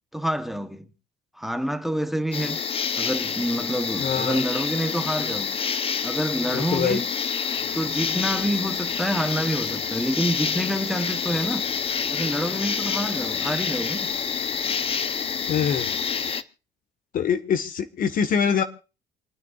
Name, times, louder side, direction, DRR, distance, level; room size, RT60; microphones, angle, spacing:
voice 1, 0.1-0.9 1.4-2.6 3.0-5.6 6.0-7.1 7.7-11.7 12.1-14.1, equal, ahead, 1.0 m, -27 dB
sound 1, 2.3-16.4, left 6 dB, 35° left, 0.7 m, -28 dB
voice 2, 4.0-4.4 6.5-7.0 15.5-15.9 17.1-18.6, left 7 dB, 55° left, 1.4 m, -24 dB
sound 2, 7.6-16.4, left 6 dB, 85° left, 1.7 m, -46 dB
28.0 x 9.4 x 2.4 m
cardioid pair, 110°, 17 cm